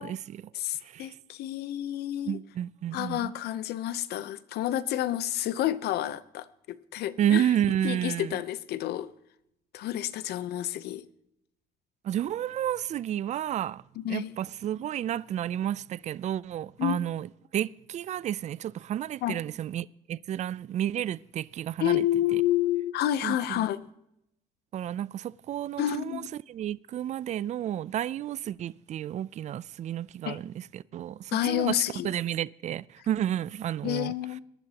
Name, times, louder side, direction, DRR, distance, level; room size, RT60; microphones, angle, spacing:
voice 1, 0.0-0.5 0.8-1.1 2.3-3.3 7.2-8.4 12.0-13.8 14.1-22.0 22.3-22.4 23.2-23.7 24.7-31.7 32.0-34.1, right 11 dB, 45° right, 0.4 m, -31 dB
voice 2, 0.5-2.4 2.9-7.5 7.8-9.1 9.7-11.1 14.0-14.4 16.8-17.0 19.2-19.4 21.8-23.9 25.8-26.3 30.2-30.4 31.3-32.1 33.8-34.4, left 13 dB, 75° left, 0.8 m, -29 dB
22.0 x 11.0 x 2.9 m
cardioid pair, 110°, 17 cm